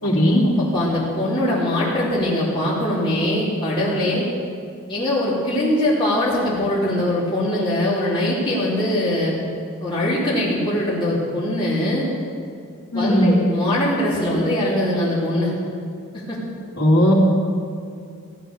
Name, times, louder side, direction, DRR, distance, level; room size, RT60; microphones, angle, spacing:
voice 1, 0.0-0.5 12.9-13.4 16.8-17.1, equal, 80° left, -2 dB, 3.0 m, -16 dB
voice 2, 0.6-4.2 4.9-9.3 9.8-12.1 12.9-15.5 16.1-16.4, left 1 dB, 25° left, -8 dB, 3.0 m, -22 dB
16.0 x 11.5 x 6.6 m, 2.3 s
head